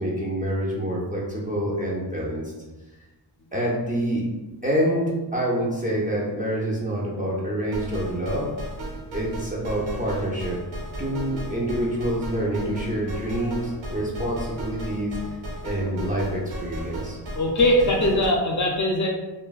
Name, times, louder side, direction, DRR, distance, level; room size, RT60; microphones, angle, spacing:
voice 1, 0.0-2.5 3.5-4.3 4.6-8.5 9.1-10.6 11.0-15.2 15.6-17.2, right 1 dB, 20° right, -5 dB, 0.4 m, -27 dB
sound 1, 7.7-18.3, right 1 dB, 90° right, 0.8 m, -35 dB
voice 2, 17.3-19.1, left 1 dB, 45° left, -1 dB, 0.5 m, -21 dB
3.2 x 2.0 x 2.2 m, 1.1 s
wide cardioid pair, 150°, 44 cm